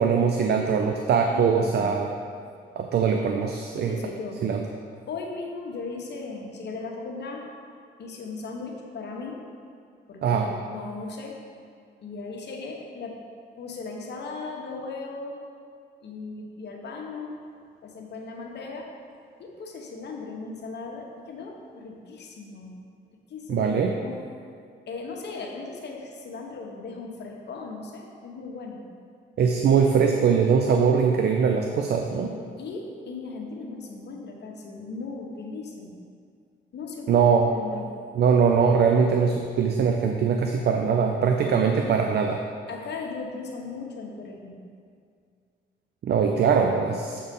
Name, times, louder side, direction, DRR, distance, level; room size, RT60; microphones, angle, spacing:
voice 1, 0.0-2.1 2.8-4.0 4.4-4.6 10.2-10.5 23.5-23.9 29.4-32.3 37.1-37.5 38.1-42.4 46.0-47.2, right 6 dB, 55° right, 3 dB, 0.6 m, -22 dB
voice 2, 1.3-1.9 3.8-4.4 5.1-7.4 8.0-9.4 10.1-11.4 12.0-13.2 13.6-15.4 16.0-17.3 17.8-18.9 19.4-22.8 23.3-24.2 24.9-28.8 32.0-36.0 36.7-37.2 37.5-37.9 41.5-41.9 42.7-44.6, left 4 dB, 60° left, 0 dB, 1.3 m, -37 dB
7.7 x 4.3 x 5.3 m, 2.2 s
cardioid pair, 90°, 20 cm